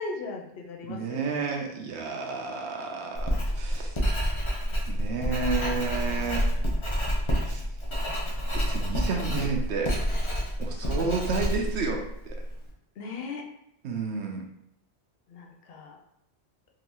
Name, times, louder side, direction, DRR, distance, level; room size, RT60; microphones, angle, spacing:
voice 1, 0.0-1.4 6.0-6.6 10.8-11.2 13.0-13.4 15.3-16.0, left 3 dB, 65° left, 0 dB, 0.8 m, -39 dB
voice 2, 0.9-3.9 4.9-6.5 7.4-7.6 8.5-10.0 10.6-12.4 13.8-14.4, right 4 dB, 80° right, 2 dB, 0.9 m, -31 dB
Writing, 3.1-12.6, equal, 35° left, 0.6 m, -28 dB
3.8 x 2.6 x 2.9 m, 0.77 s
omnidirectional pair, 1.1 m